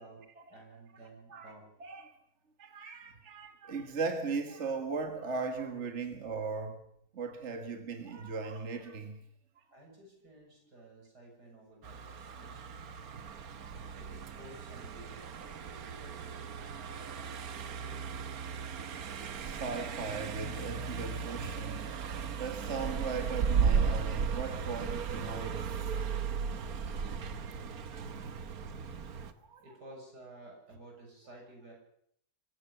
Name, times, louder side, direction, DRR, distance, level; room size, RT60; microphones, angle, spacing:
voice 1, 0.5-1.7 9.7-12.8 13.9-18.4 29.6-31.7, right 2 dB, 85° right, 1 dB, 7.6 m, -54 dB
voice 2, 1.8-2.1 2.6-6.8 7.1-9.2 9.6-9.7 12.9-13.0 13.6-13.8 16.6-17.1 19.4-26.0 26.2-26.5 27.8-28.4 29.2-29.6, right 4 dB, 45° right, 6 dB, 2.0 m, -39 dB
Car passing by, 11.8-29.3, right 6 dB, 65° right, 1.5 m, -36 dB
24.5 x 15.5 x 6.8 m, 0.69 s
omnidirectional pair, 1.7 m